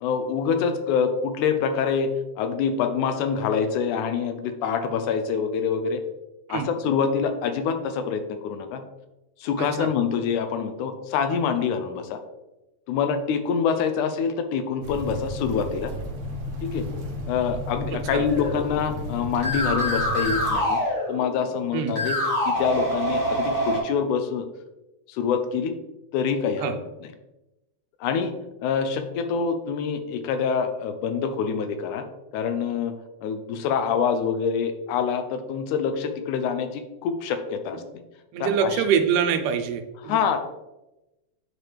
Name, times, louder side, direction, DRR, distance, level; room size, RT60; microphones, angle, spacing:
voice 1, 0.0-6.0 6.5-8.8 9.4-12.2 12.9-15.9 16.6-16.8 17.3-20.8 21.1-22.2 22.5-24.5 25.1-25.7 26.1-26.7 28.0-28.3 28.6-32.0 32.3-32.9 33.2-37.8 38.4-38.8 40.1-40.4, left 6 dB, 80° left, 7 dB, 2.0 m, -26 dB
voice 2, 9.6-9.9 18.1-18.3 21.7-22.0 26.6-26.8 38.3-40.2, right 7 dB, 80° right, 6 dB, 2.2 m, -25 dB
sound 1, 14.8-20.5, equal, 60° right, 1.6 m, -33 dB
sound 2, 18.3-19.0 19.3-21.5 21.9-23.8, equal, 30° left, 2.3 m, -26 dB
8.9 x 4.5 x 3.3 m, 0.98 s
omnidirectional pair, 3.6 m